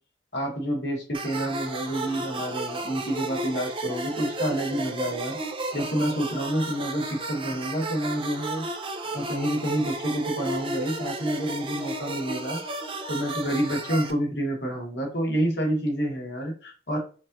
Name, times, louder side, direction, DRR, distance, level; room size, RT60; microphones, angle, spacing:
voice 1, 0.3-5.4 5.7-8.7 9.1-12.6 13.1-17.0, right 1 dB, 70° left, 0 dB, 1.5 m, -28 dB
sound 1, 1.1-14.1, right 2 dB, 30° right, 0.5 m, -33 dB
5.2 x 2.5 x 2.6 m, 0.36 s
head